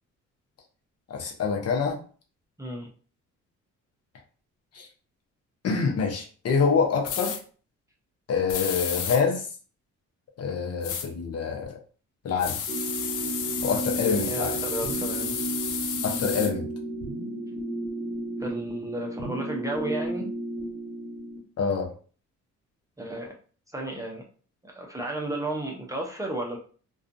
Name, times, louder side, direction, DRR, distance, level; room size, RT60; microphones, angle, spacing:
voice 1, 1.1-2.0 4.7-4.9 5.6-7.4 8.3-9.5 10.4-11.8 12.2-12.6 13.6-14.6 16.0-16.7 21.6-21.9, left 5 dB, 55° left, 1 dB, 0.8 m, -26 dB
voice 2, 2.6-2.9 14.0-15.4 18.4-20.3 23.0-23.3 23.7-24.2 24.6-26.6, right 1 dB, 10° right, -1 dB, 0.6 m, -33 dB
sound 1, 7.1-7.4 8.5-9.2 10.8-11.1 12.4-16.5, left 8 dB, 85° left, 0.5 m, -31 dB
sound 2, 12.7-21.4, right 2 dB, 55° right, 0.8 m, -33 dB
2.4 x 2.3 x 2.5 m, 0.41 s
cardioid pair, 90°, 30 cm